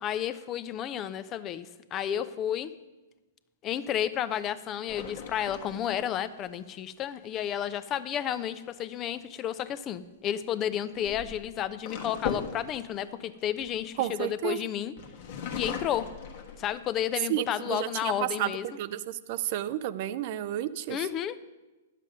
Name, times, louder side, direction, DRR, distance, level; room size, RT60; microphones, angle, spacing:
voice 1, 0.0-2.7 3.6-14.9 15.5-16.1 16.6-18.6 20.9-21.4, left 10 dB, 30° left, 14 dB, 0.5 m, -32 dB
sound 1, 4.9-6.5 9.4-9.7 10.7-14.5 15.0-17.1 17.6-17.7 18.1-18.6, left 6 dB, 55° left, 1.3 m, -39 dB
voice 2, 14.0-14.6 17.3-18.5 18.8-21.0, right 13 dB, 50° right, 15 dB, 0.4 m, -31 dB
10.0 x 7.4 x 5.2 m, 1.1 s
hypercardioid pair, 120°, 0 cm